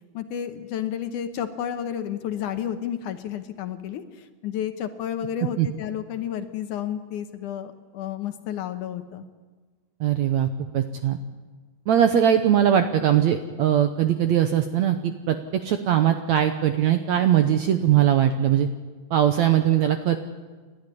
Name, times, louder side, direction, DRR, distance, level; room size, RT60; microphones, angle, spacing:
voice 1, 0.1-9.2, left 9 dB, 70° left, 9 dB, 2.3 m, -31 dB
voice 2, 10.0-10.5 10.7-11.2 11.9-15.4 15.6-18.7 19.1-20.2, right 10 dB, 70° right, 8 dB, 1.7 m, -20 dB
30.0 x 12.0 x 9.8 m, 1.4 s
omnidirectional pair, 4.2 m